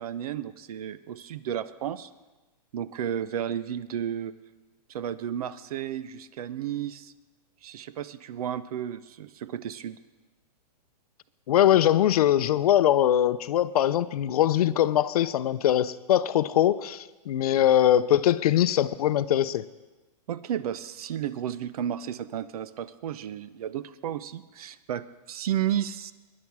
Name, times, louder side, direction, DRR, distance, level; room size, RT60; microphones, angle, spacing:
voice 1, 0.0-2.1 2.7-4.3 4.9-7.1 7.6-10.0 20.3-26.1, right 10 dB, 60° right, 0.8 m, -33 dB
voice 2, 11.5-19.6, left 11 dB, 60° left, 0.7 m, -22 dB
20.0 x 10.5 x 4.8 m
hypercardioid pair, 150°, 21 cm